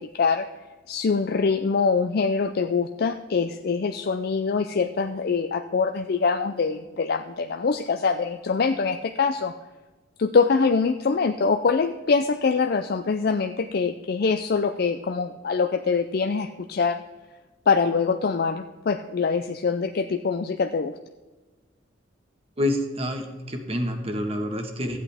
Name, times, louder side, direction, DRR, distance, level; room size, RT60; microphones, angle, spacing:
voice 1, 0.1-0.5 0.9-9.5 10.2-17.0 17.7-20.9, left 5 dB, 50° left, 7 dB, 0.4 m, -24 dB
voice 2, 22.6-25.0, left 1 dB, 30° right, 4 dB, 1.3 m, -27 dB
15.0 x 8.4 x 3.5 m, 1.3 s
head